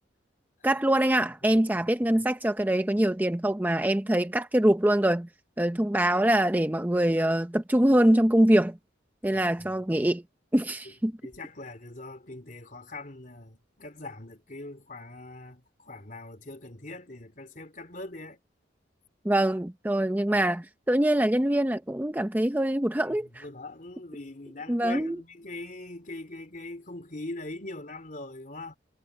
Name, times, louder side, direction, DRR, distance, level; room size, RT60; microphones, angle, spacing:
voice 1, 0.6-5.3 5.6-8.8 9.2-10.2 10.5-11.1 19.2-23.4 24.7-25.2, right 1 dB, 10° right, 0.6 m, -24 dB
voice 2, 9.3-9.7 10.9-11.0 11.2-18.4 20.3-20.4 23.1-28.8, left 2 dB, 45° left, 3.1 m, -42 dB
head